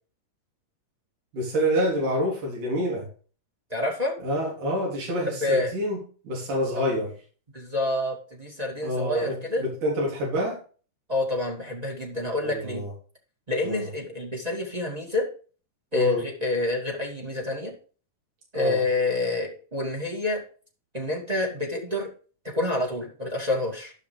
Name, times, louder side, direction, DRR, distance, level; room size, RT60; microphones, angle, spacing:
voice 1, 1.3-3.1 4.2-6.0 6.2-7.1 8.8-10.6 12.4-12.9 13.6-13.9 15.9-16.2 18.5-18.8, equal, 75° right, -2 dB, 5.1 m, -27 dB
voice 2, 3.7-4.1 5.3-5.7 6.7-6.8 7.5-9.6 11.1-12.8 13.5-15.3 15.9-17.7 18.5-20.4 20.9-22.1 22.5-23.9, left 2 dB, 15° right, 0 dB, 2.1 m, -27 dB
12.5 x 5.8 x 5.0 m, 0.39 s
omnidirectional pair, 3.7 m